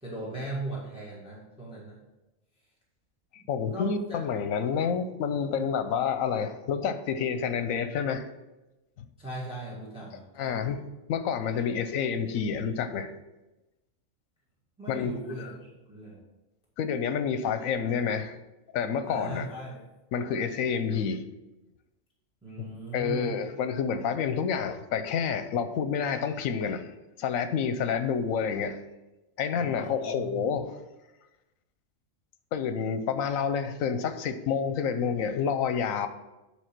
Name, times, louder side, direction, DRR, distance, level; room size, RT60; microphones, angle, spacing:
voice 1, 0.0-2.0 3.3-4.2 9.2-10.6 14.8-15.6 15.9-16.2 19.0-19.8 22.4-23.3 29.5-30.4, right 2 dB, 5° right, -6 dB, 1.7 m, -39 dB
voice 2, 3.3-8.3 9.0-9.1 10.4-10.8 11.1-13.1 14.9-15.1 15.4-15.5 16.8-18.4 18.7-19.5 20.1-21.2 22.6-26.9 27.2-28.8 29.4-30.7 32.5-36.1, left 6 dB, 80° left, 10 dB, 1.1 m, -29 dB
9.4 x 3.4 x 5.9 m, 1.0 s
omnidirectional pair, 1.4 m